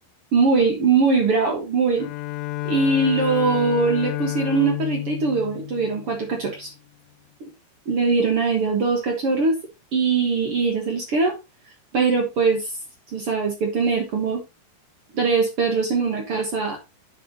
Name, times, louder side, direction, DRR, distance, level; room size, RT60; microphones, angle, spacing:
voice 1, 0.3-2.1 2.6-6.7 7.4-7.5 7.8-9.6 9.9-11.4 11.9-12.7 13.1-14.4 15.1-16.8, right 4 dB, 60° right, 2 dB, 1.5 m, -21 dB
Bowed string instrument, 2.0-6.6, left 15 dB, 90° left, 2.7 m, -30 dB
10.0 x 7.0 x 2.9 m, 0.24 s
omnidirectional pair, 4.7 m